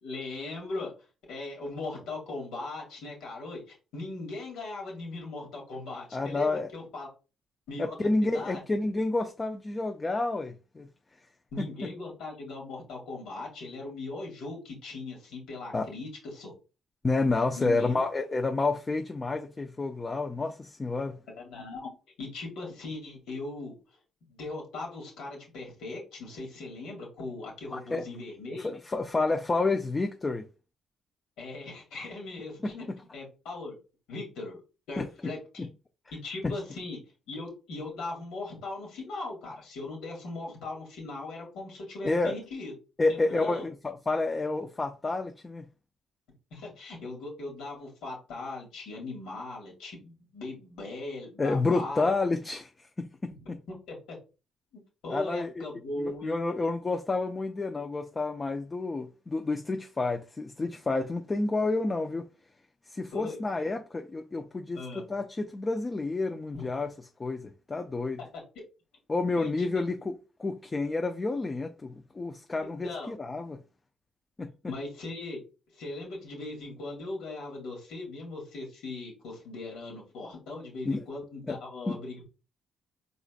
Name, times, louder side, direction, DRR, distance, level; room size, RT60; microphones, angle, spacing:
voice 1, 0.0-0.9 1.3-7.1 7.7-8.6 11.5-16.5 17.6-18.0 21.4-21.9 22.2-23.7 24.3-28.7 31.4-32.9 33.1-33.8 34.1-34.6 34.9-35.7 36.1-37.0 37.3-42.7 43.1-43.6 46.5-52.1 53.9-54.2 55.0-56.4 63.1-63.4 64.7-65.0 66.5-66.7 69.4-69.8 72.8-73.1 74.7-75.4 75.7-82.2, left 2 dB, 85° left, 2.4 m, -39 dB
voice 2, 6.1-6.7 7.8-10.9 11.6-11.9 15.7-15.9 17.0-21.2 27.7-28.0 28.6-30.4 32.6-33.0 35.0-35.1 35.6-35.7 36.4-36.5 42.0-42.4 43.0-45.7 51.4-53.6 55.1-55.7 56.0-62.3 62.9-66.9 67.2-68.2 69.1-70.1 70.4-73.6 74.4-74.5 80.8-81.0 81.5-81.6 81.9-82.0, left 3 dB, 25° left, 0.5 m, -30 dB
4.9 x 4.0 x 2.4 m
cardioid pair, 90°, 0 cm